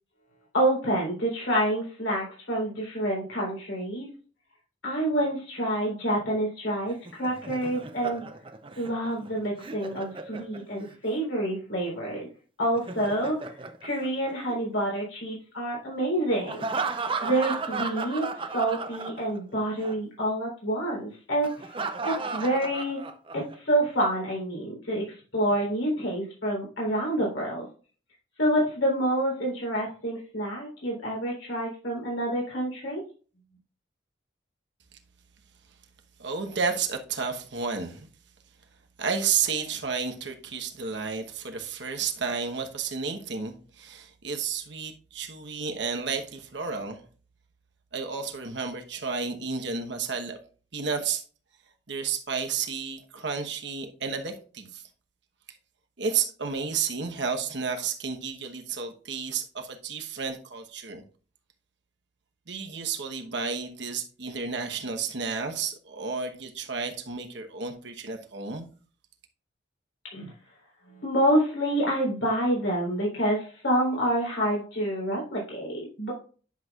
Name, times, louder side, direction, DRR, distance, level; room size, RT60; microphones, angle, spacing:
voice 1, 0.5-4.1 4.8-8.2 8.8-12.3 12.6-13.4 13.8-16.6 17.2-23.0 23.3-25.0 25.3-27.7 28.4-33.0 70.1-70.3 70.9-76.1, right 1 dB, 90° left, 3.8 m, -27 dB
Laughter, 6.9-10.9 12.6-14.8 16.5-19.5 19.8-19.9 21.4-23.5, right 4 dB, 25° right, 0.6 m, -35 dB
voice 2, 36.2-38.1 39.0-47.0 47.9-50.4 50.7-51.2 51.9-54.8 56.0-61.0 62.5-68.7, right 5 dB, 65° right, 1.1 m, -31 dB
10.5 x 6.1 x 2.4 m
head